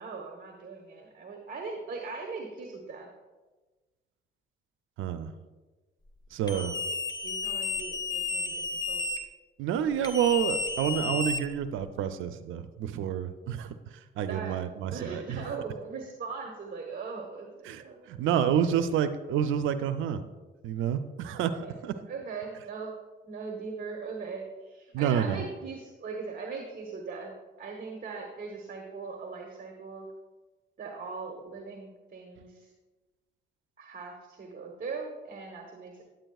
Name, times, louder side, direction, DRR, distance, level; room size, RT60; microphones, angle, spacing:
voice 1, 0.0-3.1 6.5-6.7 7.2-9.0 14.2-14.6 14.9-18.6 21.6-21.7 22.1-22.9 23.2-27.3 27.6-30.1 30.8-32.7 33.8-36.0, right 4 dB, 45° right, 1 dB, 1.1 m, -40 dB
voice 2, 5.0-5.3 6.3-6.7 9.6-13.7 14.2-15.4 17.6-17.8 18.1-20.2 20.6-22.0 24.9-25.5, right 9 dB, 80° right, 10 dB, 0.5 m, -29 dB
sound 1, 6.5-9.2 10.0-11.8, left 4 dB, 20° left, 0.7 m, -32 dB
9.4 x 8.9 x 2.3 m, 1.2 s
cardioid pair, 90°, 20 cm